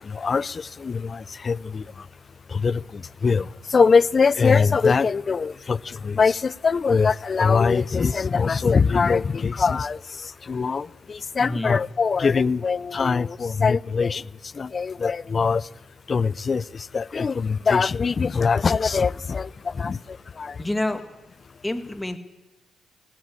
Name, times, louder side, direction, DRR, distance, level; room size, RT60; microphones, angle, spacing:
voice 1, 0.1-1.8 2.5-2.8 3.2-10.0 10.5-14.2 14.6-15.6 16.1-16.6 16.9-19.5 19.8-20.0 20.4-20.5, left 5 dB, 35° left, 0.6 m, -22 dB
voice 2, 11.4-11.8 20.6-21.0 21.6-22.2, left 1 dB, 10° left, 2.3 m, -27 dB
18.5 x 16.0 x 9.7 m
cardioid pair, 90°, 0 cm